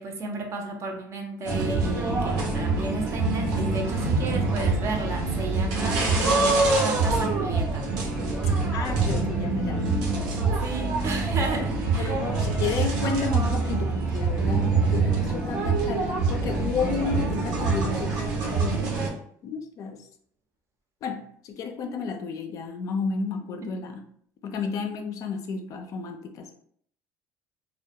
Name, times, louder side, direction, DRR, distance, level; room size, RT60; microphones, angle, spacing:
voice 1, 0.0-6.1 6.8-7.9 10.6-12.2, right 3 dB, 40° right, 3 dB, 0.5 m, -33 dB
sound 1, 1.5-19.1, right 3 dB, 75° right, 0.7 m, -25 dB
voice 2, 8.7-9.9 11.4-11.5 12.0-20.1 21.0-24.0 24.4-26.5, left 5 dB, 50° left, 5 dB, 0.4 m, -32 dB
2.2 x 2.1 x 2.8 m, 0.63 s
cardioid pair, 125°, 7 cm